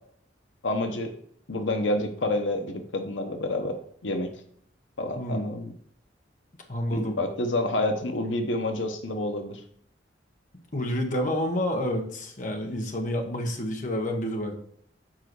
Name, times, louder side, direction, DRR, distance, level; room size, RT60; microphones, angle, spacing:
voice 1, 0.6-1.1 1.5-4.3 5.0-5.7 6.9-9.6, left 2 dB, 90° left, 6 dB, 0.9 m, -28 dB
voice 2, 6.7-7.2 10.7-14.5, equal, 45° left, 3 dB, 1.3 m, -29 dB
7.6 x 4.8 x 4.6 m, 0.65 s
head